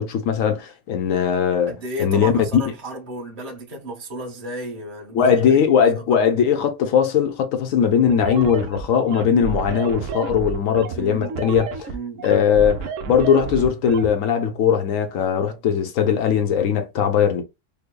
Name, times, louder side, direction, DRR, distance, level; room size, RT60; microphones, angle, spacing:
voice 1, 0.0-2.6 5.1-11.7 12.2-17.4, left 7 dB, 70° left, 0.8 m, -19 dB
voice 2, 1.7-5.3 5.8-6.2 10.9-11.4 11.9-12.7, right 1 dB, 25° right, 0.9 m, -34 dB
sound 1, 8.1-14.1, right 6 dB, 80° right, 0.7 m, -30 dB
5.2 x 2.1 x 2.2 m
omnidirectional pair, 1.9 m